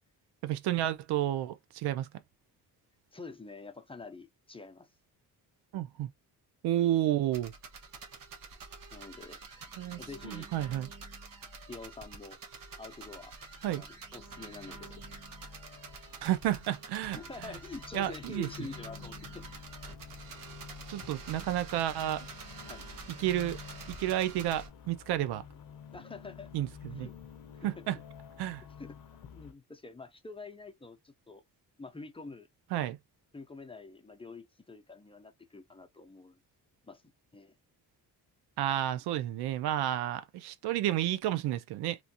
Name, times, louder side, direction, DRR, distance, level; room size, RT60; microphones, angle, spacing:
voice 1, 0.4-2.1 5.7-6.1 6.6-7.5 9.8-10.9 13.6-13.8 16.2-17.5 17.9-18.5 20.9-22.3 23.2-23.6 23.9-25.4 26.5-27.1 27.6-28.0 28.4-28.6 32.7-33.0 38.6-42.0, right 12 dB, 80° right, 0.5 m, -31 dB
voice 2, 3.1-4.9 8.9-9.4 10.0-10.5 11.7-12.4 12.8-13.3 13.7-15.0 17.1-19.5 22.7-22.9 25.9-26.5 26.9-27.1 27.6-28.0 28.8-29.0 29.3-31.4 31.8-32.5 33.3-36.4 36.8-37.0 37.3-37.5, left 3 dB, 15° left, 0.6 m, -46 dB
sound 1, 7.3-24.7, right 4 dB, 60° right, 1.2 m, -47 dB
sound 2, 13.2-29.5, left 8 dB, 60° left, 0.8 m, -51 dB
3.1 x 2.6 x 2.8 m
cardioid pair, 75°, 38 cm